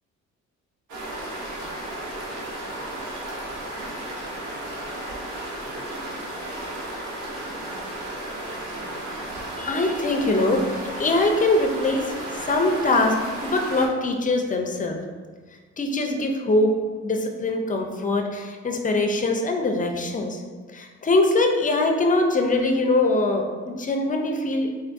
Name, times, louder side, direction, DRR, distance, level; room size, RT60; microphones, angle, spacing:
sound 1, 0.9-13.9, right 1 dB, 75° right, 0.9 m, -34 dB
voice 1, 9.6-15.0 15.8-16.7 17.0-20.4 20.7-24.7, left 2 dB, 25° left, 3 dB, 0.5 m, -23 dB
3.6 x 3.4 x 2.6 m, 1.5 s
cardioid pair, 90°, 30 cm